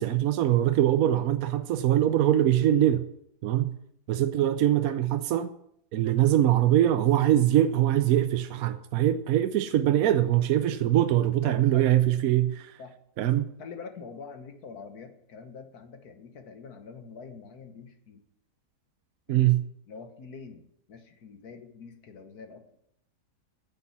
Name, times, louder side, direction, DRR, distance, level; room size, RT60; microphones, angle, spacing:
voice 1, 0.0-3.1 3.4-3.7 4.1-5.5 5.9-12.8 13.2-13.5 19.3-19.6, right 12 dB, 70° right, 0.9 m, -23 dB
voice 2, 11.4-11.9 12.8-13.0 13.2-18.2 19.3-19.5 19.9-22.7, left 5 dB, 65° left, 1.6 m, -45 dB
9.8 x 7.5 x 7.1 m
omnidirectional pair, 1.8 m